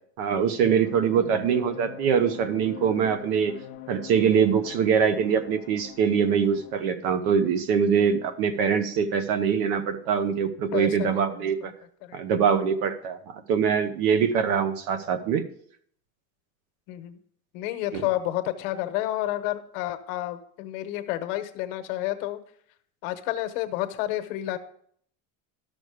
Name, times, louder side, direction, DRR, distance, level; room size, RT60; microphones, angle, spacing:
voice 1, 0.2-3.5 3.9-11.7 12.1-15.4 17.9-18.0, right 7 dB, 80° right, 12 dB, 1.1 m, -23 dB
sound 1, 0.6-6.8, left 11 dB, 30° left, 0.6 m, -43 dB
voice 2, 10.7-11.5 12.0-12.2 16.9-17.2 17.5-22.4 23.0-24.6, left 14 dB, 70° left, 9 dB, 1.1 m, -30 dB
12.5 x 6.4 x 4.9 m, 0.63 s
cardioid pair, 180°, 41 cm